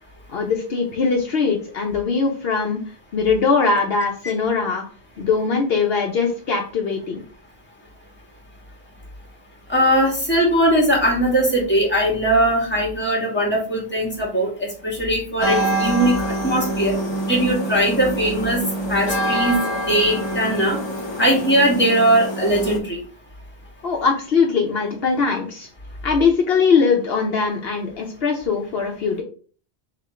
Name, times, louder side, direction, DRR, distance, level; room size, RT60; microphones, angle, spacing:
voice 1, 0.3-2.8 3.1-4.9 5.2-7.2 23.8-25.7 26.0-29.2, left 5 dB, 65° left, 1 dB, 0.9 m, -21 dB
voice 2, 9.7-16.1 16.4-16.9 17.3-18.6 18.9-19.6 19.9-20.8 21.2-23.0, right 1 dB, 10° left, -3 dB, 1.6 m, -19 dB
sound 1, 15.4-22.8, right 1 dB, 25° left, 1.0 m, -25 dB
3.5 x 2.9 x 4.8 m, 0.41 s
omnidirectional pair, 1.1 m